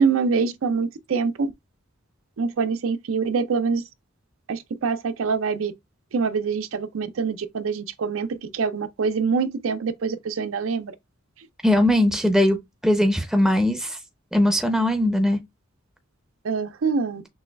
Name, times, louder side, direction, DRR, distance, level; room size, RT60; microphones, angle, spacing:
voice 1, 0.0-1.5 2.4-3.8 4.5-5.7 6.1-10.9 16.4-17.2, right 5 dB, 80° right, 0.5 m, -25 dB
voice 2, 11.6-12.6 12.8-14.0 14.3-15.4, left 1 dB, 5° right, 0.5 m, -20 dB
6.1 x 2.3 x 2.2 m
head